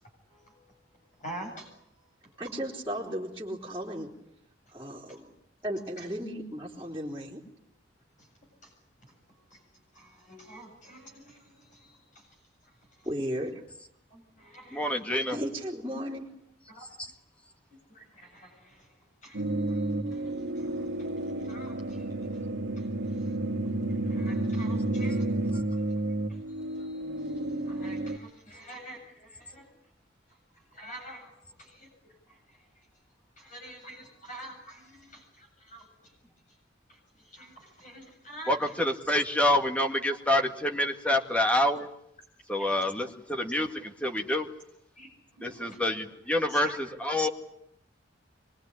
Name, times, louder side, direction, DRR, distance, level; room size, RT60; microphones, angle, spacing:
voice 1, 1.2-1.7 8.6-8.7 9.5-9.6 9.9-12.2 14.1-15.0 16.7-16.9 17.9-18.9 19.2-19.8 20.1-20.3 20.6-21.1 21.4-22.1 22.8-22.9 23.2-23.3 24.0-26.4 26.8-27.0 27.6-29.7 30.7-31.9 32.3-32.4 33.4-35.9 36.9-37.0 37.3-38.6 42.6-42.7 45.0-45.1 45.4-45.8 46.5-46.8, right 1 dB, 40° left, 3 dB, 7.6 m, -47 dB
voice 2, 2.4-4.1 4.7-5.3 5.6-7.4 13.0-13.6 15.1-16.3, equal, 15° right, -6 dB, 3.8 m, -35 dB
voice 3, 14.7-15.4 17.0-17.1 38.5-41.9 42.5-44.5 45.4-47.3, left 1 dB, 5° left, 4 dB, 2.0 m, -27 dB
sound 1, 19.3-28.2, right 2 dB, 75° right, 2.1 m, -31 dB
25.0 x 22.5 x 9.9 m, 0.74 s
head